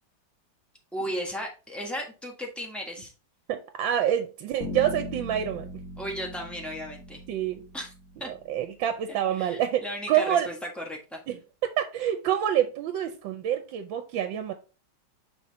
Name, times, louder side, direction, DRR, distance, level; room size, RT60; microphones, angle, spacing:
voice 1, 0.9-3.1 6.0-7.2 7.7-7.9 8.2-8.3 9.4-11.2, equal, ahead, 1.2 m, -35 dB
voice 2, 3.5-5.7 7.3-7.6 8.2-10.5 11.3-11.4 11.6-14.5, right 10 dB, 75° right, 1.4 m, -27 dB
Bass guitar, 4.6-8.6, left 2 dB, 45° left, 2.0 m, -40 dB
5.8 x 4.0 x 4.1 m
omnidirectional pair, 2.1 m